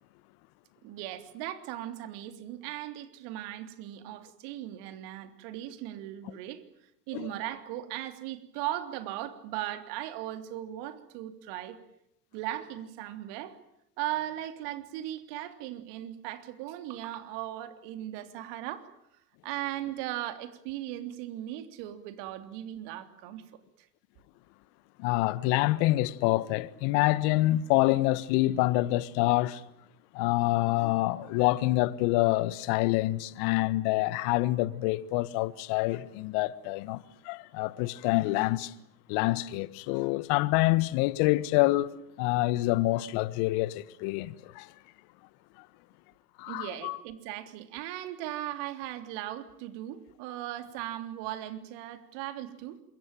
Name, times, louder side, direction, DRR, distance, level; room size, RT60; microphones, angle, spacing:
voice 1, 0.8-6.6 7.1-11.8 12.3-13.6 14.0-18.9 19.4-23.5 23.8-23.9 46.5-52.8, right 13 dB, 60° right, 3.5 m, -38 dB
voice 2, 25.0-29.6 30.1-38.7 39.1-44.7 46.4-47.0, left 18 dB, 60° left, 1.5 m, -27 dB
27.0 x 23.0 x 9.1 m
hypercardioid pair, 90°, 47 cm